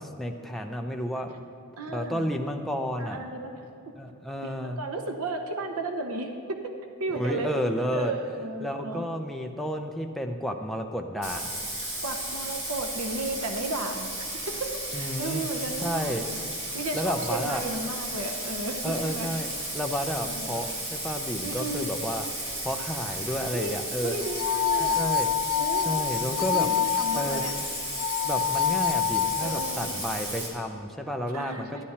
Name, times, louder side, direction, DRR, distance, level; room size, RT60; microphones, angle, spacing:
voice 1, 0.0-1.3 1.9-3.2 4.0-4.8 7.1-8.1 8.6-11.6 14.9-15.4 15.8-16.2 16.9-17.6 18.8-19.5 19.7-22.2 22.6-24.1 24.8-25.3 25.9-26.7 27.1-27.4 28.2-31.8, equal, ahead, 2 dB, 0.6 m, -31 dB
voice 2, 1.8-2.3 3.0-3.5 4.4-6.6 7.0-7.5 7.9-9.0 12.0-16.4 16.7-19.3 20.2-20.6 21.4-21.9 23.5-23.8 24.0-25.0 25.5-25.9 26.5-27.5 29.4-30.0 31.3-31.8, right 2 dB, 75° right, 4 dB, 0.9 m, -34 dB
Bathtub (filling or washing), 11.2-30.5, right 1 dB, 55° right, 2.5 m, -34 dB
sound 1, 24.2-30.1, left 9 dB, 75° left, 0.3 m, -27 dB
13.0 x 9.9 x 4.3 m, 2.7 s
head